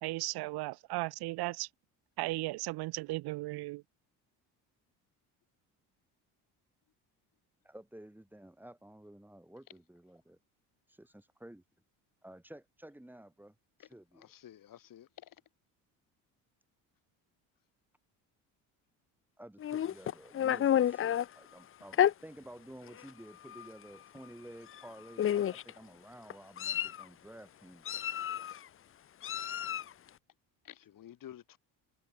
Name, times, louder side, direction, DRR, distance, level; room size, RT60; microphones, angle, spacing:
voice 1, 0.0-1.7 2.2-3.8, right 20 dB, 75° right, 1.9 m, -36 dB
voice 2, 7.6-10.4 10.9-11.6 12.2-14.3 19.4-28.0, right 1 dB, 5° right, 7.4 m, -52 dB
voice 3, 13.8-15.4 30.6-31.6, left 11 dB, 60° left, 6.6 m, -52 dB
Meow, 19.6-21.3 21.9-22.1 23.0-23.1 23.5-23.7 24.7-24.8 25.2-25.7 26.3-27.0 27.9-28.6 29.2-29.9, left 10 dB, 35° left, 0.6 m, -30 dB
cardioid pair, 95°, 38 cm